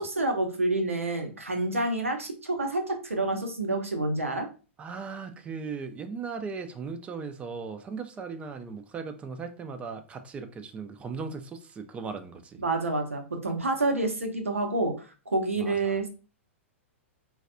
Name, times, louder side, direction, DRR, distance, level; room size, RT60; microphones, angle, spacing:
voice 1, 0.0-4.5 12.6-16.1, right 2 dB, 85° right, 0.7 m, -28 dB
voice 2, 4.8-12.6 15.6-16.0, right 5 dB, 15° right, 0.4 m, -38 dB
4.0 x 2.2 x 2.5 m
figure-of-eight pair, 105°, 7 cm